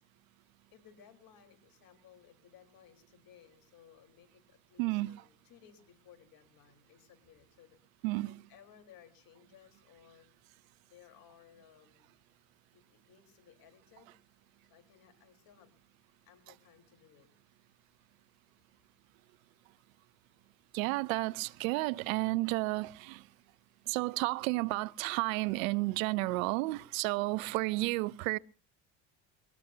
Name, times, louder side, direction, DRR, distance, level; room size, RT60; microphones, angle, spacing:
voice 1, 0.7-7.8 8.2-10.3 10.9-12.1 12.7-14.1 14.7-15.8 16.2-17.3, left 9 dB, 55° left, 4.3 m, -60 dB
voice 2, 4.8-5.1 8.0-8.3 20.7-23.2 23.9-28.4, right 22 dB, 75° right, 0.6 m, -32 dB
23.0 x 18.5 x 2.8 m
hypercardioid pair, 85°, 41 cm